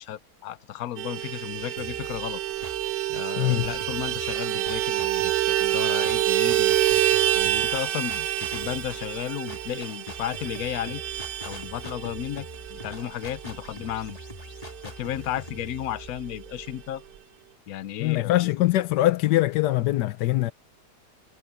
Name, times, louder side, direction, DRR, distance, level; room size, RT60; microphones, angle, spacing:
voice 1, 0.0-2.4 3.1-6.8 7.3-14.2 14.8-17.0 17.7-18.4, left 12 dB, 65° left, 1.1 m, -34 dB
Vehicle horn car horn honking, 1.0-14.9 15.1-15.3 15.6-15.8 16.0-16.7, right 13 dB, 80° right, 1.4 m, -27 dB
sound 1, 1.8-3.0 3.5-17.2, left 1 dB, 20° left, 2.2 m, -44 dB
voice 2, 3.4-3.7 18.0-20.5, left 15 dB, 90° left, 1.3 m, -22 dB
omnidirectional pair, 1.8 m